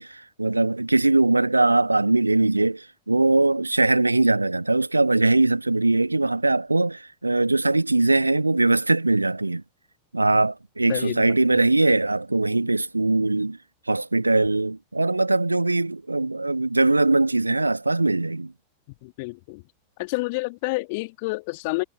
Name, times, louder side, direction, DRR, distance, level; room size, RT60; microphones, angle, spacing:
voice 1, 0.0-9.6 10.1-13.6 13.9-18.5, right 2 dB, 85° right, 1.4 m, -21 dB
voice 2, 10.9-11.6 19.0-19.6 20.0-21.8, left 26 dB, 50° left, 2.8 m, -29 dB
figure-of-eight pair, 90°, 0 cm